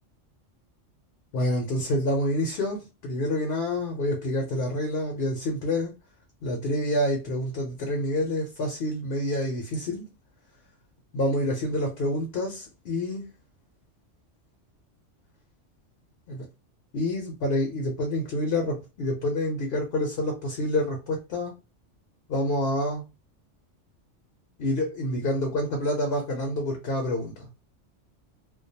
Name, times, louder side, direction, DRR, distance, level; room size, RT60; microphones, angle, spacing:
voice 1, 1.3-5.9 6.4-10.1 11.1-13.3 16.3-16.5 16.9-21.5 22.3-23.0 24.6-27.5, left 1 dB, 60° left, 0.8 m, -27 dB
2.4 x 2.2 x 2.6 m
omnidirectional pair, 1.2 m